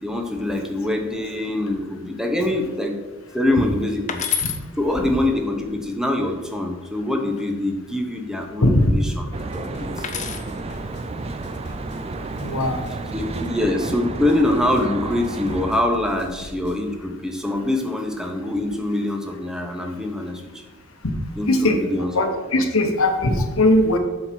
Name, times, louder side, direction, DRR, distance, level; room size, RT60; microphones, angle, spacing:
voice 1, 0.0-3.0 3.3-4.2 4.8-9.2 9.5-10.1 13.1-20.7 21.4-22.1 22.5-22.6, left 1 dB, 5° right, 3 dB, 0.8 m, -24 dB
sound 1, 4.1-4.6 6.8-7.4 10.0-10.5 11.8-12.3, left 8 dB, 35° left, 0.6 m, -28 dB
voice 2, 8.6-8.9 12.4-12.8 21.5-21.8 22.1-24.0, left 1 dB, 75° left, 6 dB, 1.0 m, -19 dB
sound 2, 9.3-16.8, left 1 dB, 55° left, 0.9 m, -41 dB
Traffic noise roadway noise, 9.3-15.7, right 3 dB, 30° right, 0.4 m, -32 dB
7.6 x 4.5 x 5.9 m, 1.2 s
head